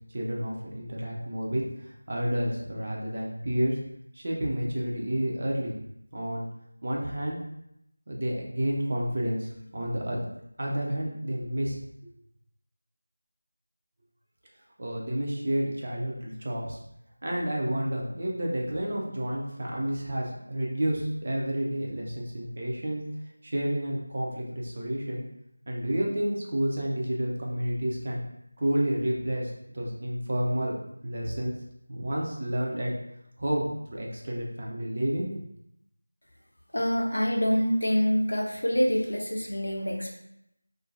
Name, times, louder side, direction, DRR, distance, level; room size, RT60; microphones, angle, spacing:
voice 1, 0.1-3.8 4.1-5.7 6.1-6.5 6.8-7.4 8.1-10.2 10.6-11.8 12.0-12.1 14.8-16.8 17.2-23.0 23.4-25.2 25.7-28.2 28.6-30.7 31.0-31.5 31.9-32.9 33.4-35.5, equal, 35° right, -2 dB, 0.4 m, -30 dB
voice 2, 36.7-40.1, equal, 65° left, 0 dB, 0.5 m, -26 dB
2.4 x 2.1 x 2.6 m, 0.79 s
figure-of-eight pair, 170°, 0 cm